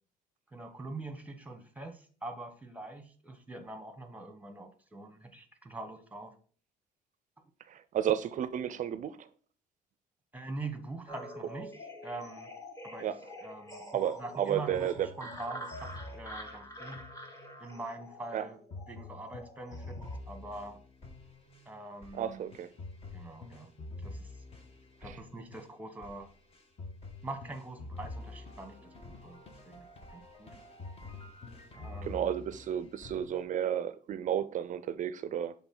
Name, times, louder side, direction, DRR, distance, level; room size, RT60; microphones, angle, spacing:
voice 1, 0.5-6.4 10.3-11.7 12.0-12.5 12.8-13.1 13.4-17.1 17.6-18.6 18.9-20.0 20.3-20.8 21.6-22.5 23.1-23.7 24.0-24.4 25.0-26.3 27.2-29.8 30.1-30.6 31.7-32.3, right 2 dB, 10° right, 1.2 m, -44 dB
voice 2, 7.7-9.3 13.0-13.2 13.9-15.1 18.3-18.4 22.1-22.7 25.1-25.2 32.0-35.5, right 10 dB, 50° right, 0.5 m, -32 dB
sound 1, 11.1-20.2, equal, 20° left, 1.5 m, -47 dB
sound 2, 14.7-17.8 18.7-33.4, left 2 dB, 35° left, 1.2 m, -47 dB
7.1 x 3.6 x 3.8 m
cardioid pair, 110°, 17 cm